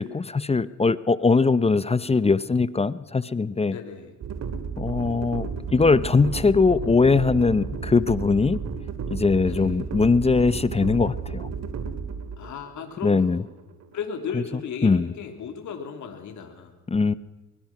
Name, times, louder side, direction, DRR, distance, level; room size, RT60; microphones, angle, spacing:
voice 1, 0.0-3.8 4.8-8.6 9.1-11.5 13.0-13.4 14.8-15.1 16.9-17.1, left 4 dB, 20° left, 16 dB, 0.7 m, -21 dB
voice 2, 3.7-4.1 9.4-9.8 12.4-13.5 13.9-16.7, left 6 dB, 75° left, 4 dB, 3.2 m, -35 dB
sound 1, 4.2-14.3, right 6 dB, 60° right, 2.4 m, -33 dB
23.0 x 21.5 x 6.1 m, 1.1 s
cardioid pair, 90°, 30 cm